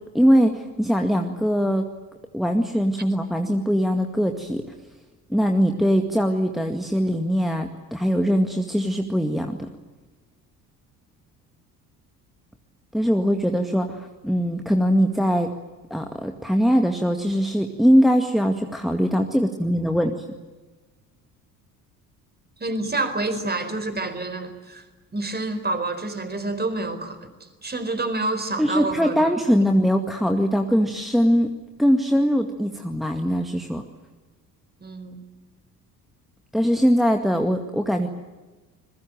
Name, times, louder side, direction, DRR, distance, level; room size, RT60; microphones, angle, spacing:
voice 1, 0.1-1.9 2.3-4.6 5.3-9.7 12.9-15.5 15.9-20.2 28.6-31.5 31.8-33.8 36.5-38.1, equal, ahead, 5 dB, 2.0 m, -21 dB
voice 2, 22.6-24.8 25.1-29.3 34.8-35.2, right 2 dB, 20° right, 9 dB, 4.5 m, -28 dB
27.5 x 22.0 x 9.2 m, 1.2 s
figure-of-eight pair, 50°, 48 cm